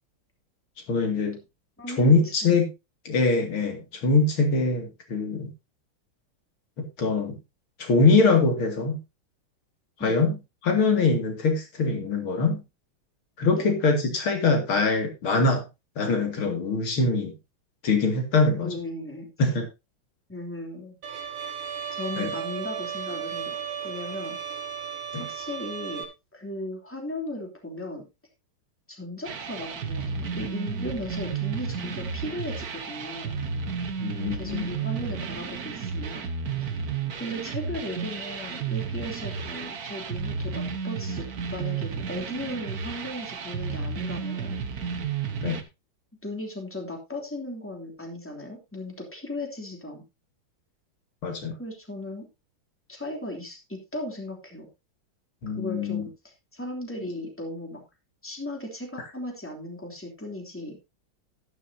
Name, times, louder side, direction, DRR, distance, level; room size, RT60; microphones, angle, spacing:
voice 1, 0.9-1.4 2.0-2.7 3.0-5.5 6.8-7.4 7.8-9.0 10.0-10.4 10.6-12.6 13.4-15.6 16.0-17.3 17.8-18.7 19.4-19.7 22.2-22.3 25.1-25.2 34.0-34.6 45.4-45.6 51.2-51.5 55.4-56.1, left 3 dB, 80° left, 5 dB, 3.3 m, -23 dB
voice 2, 1.8-2.6 10.0-10.3 13.5-13.7 18.6-19.3 20.3-21.0 21.9-23.5 23.8-24.6 25.2-26.0 26.3-28.0 28.9-33.4 34.3-36.3 37.2-41.2 41.5-44.6 46.2-50.0 51.6-52.2 52.9-54.7 55.6-57.8 58.2-60.8, left 1 dB, 5° left, 2 dB, 3.1 m, -36 dB
Bowed string instrument, 21.0-26.0, right 8 dB, 70° right, 3.2 m, -34 dB
sound 1, 29.2-45.6, right 6 dB, 50° right, 1.6 m, -32 dB
12.0 x 11.5 x 2.8 m, 0.25 s
omnidirectional pair, 2.2 m